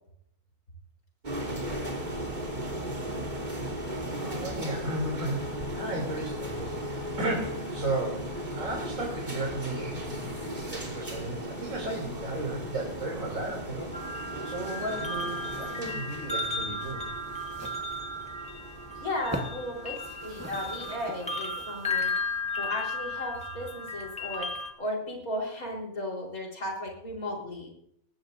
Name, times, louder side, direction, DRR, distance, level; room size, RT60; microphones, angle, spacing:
sound 1, 1.2-21.0, right 1 dB, 30° right, 3.3 m, -37 dB
voice 1, 3.8-13.9 14.4-17.0, right 1 dB, 65° right, -1 dB, 3.5 m, -35 dB
sound 2, 13.9-24.7, left 2 dB, 5° left, 1.6 m, -35 dB
sound 3, 15.7-16.0 16.3-16.4 16.9-17.0 17.5-17.8 18.3-18.4 18.6-18.8 19.2-19.6 19.9-22.4, right 1 dB, 10° right, 1.3 m, -42 dB
voice 2, 18.9-19.9 20.2-22.1 22.5-27.7, left 1 dB, 80° left, -2 dB, 4.7 m, -35 dB
20.5 x 15.5 x 2.6 m, 0.71 s
omnidirectional pair, 1.5 m